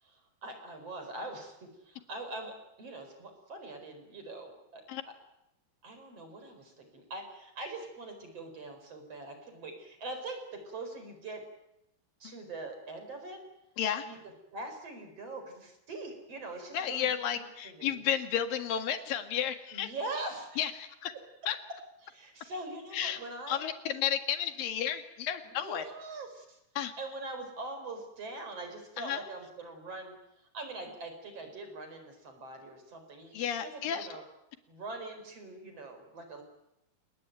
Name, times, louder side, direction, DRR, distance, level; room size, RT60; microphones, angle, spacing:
voice 1, 0.0-5.1 5.8-11.4 12.2-13.4 14.1-14.2 14.5-18.0 19.7-20.7 22.0-23.6 25.4-26.6 27.0-30.2 30.5-34.2 34.7-36.4, right 2 dB, 40° right, 6 dB, 5.3 m, -43 dB
voice 2, 13.8-14.1 16.7-19.9 20.6-21.1 21.5-21.6 22.9-23.2 23.5-25.9 26.8-26.9 29.0-29.2 33.3-34.1, left 9 dB, 65° left, 8 dB, 3.5 m, -32 dB
29.0 x 19.5 x 9.2 m, 0.86 s
omnidirectional pair, 4.5 m